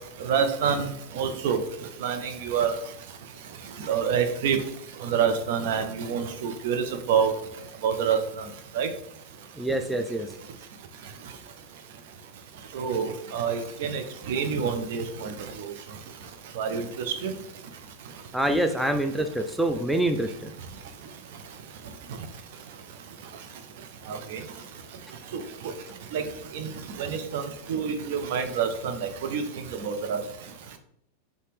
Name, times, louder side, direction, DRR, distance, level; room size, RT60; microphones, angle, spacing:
voice 1, 0.3-0.9 1.2-1.6 2.0-2.7 3.9-4.6 5.0-7.3 7.8-8.2 8.8-8.9 12.7-14.0 14.3-15.3 16.6-16.8 17.2-17.3 24.1-24.4 26.1-26.2 26.5-26.7 27.0-27.4 27.7-28.7 29.3-29.4 29.8-30.2, right 7 dB, 50° right, 7 dB, 0.6 m, -26 dB
voice 2, 9.6-10.3 18.3-20.5, right 1 dB, 5° right, 6 dB, 0.4 m, -26 dB
4.0 x 3.5 x 3.4 m, 0.74 s
figure-of-eight pair, 90°, 0 cm